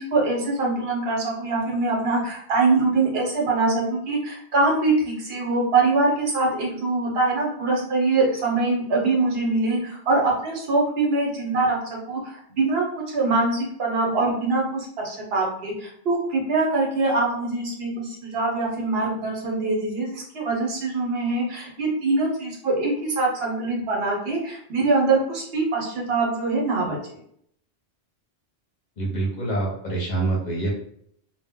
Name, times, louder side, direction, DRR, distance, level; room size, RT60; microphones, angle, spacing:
voice 1, 0.0-11.8 12.1-27.2, right 3 dB, 65° right, -2 dB, 0.9 m, -23 dB
voice 2, 29.0-30.7, right 2 dB, 45° left, -4 dB, 0.8 m, -26 dB
2.1 x 2.1 x 3.5 m, 0.68 s
omnidirectional pair, 1.1 m